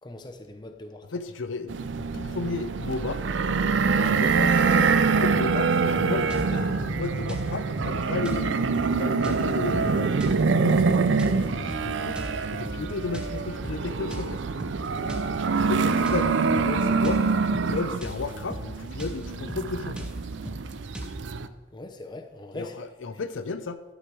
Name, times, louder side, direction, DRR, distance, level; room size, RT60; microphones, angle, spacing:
voice 1, 0.0-1.1 21.7-22.8, left 1 dB, 25° left, 5 dB, 0.8 m, -41 dB
voice 2, 1.1-3.2 4.0-4.6 5.1-8.6 8.9-10.2 10.5-12.2 12.5-14.4 15.7-17.2 17.6-20.1 22.5-23.8, left 3 dB, 75° left, 10 dB, 0.6 m, -33 dB
sound 1, 1.7-21.5, right 4 dB, 65° right, 0.5 m, -25 dB
sound 2, 6.3-21.2, equal, 5° right, 1.0 m, -39 dB
11.5 x 4.9 x 6.1 m, 1.1 s
head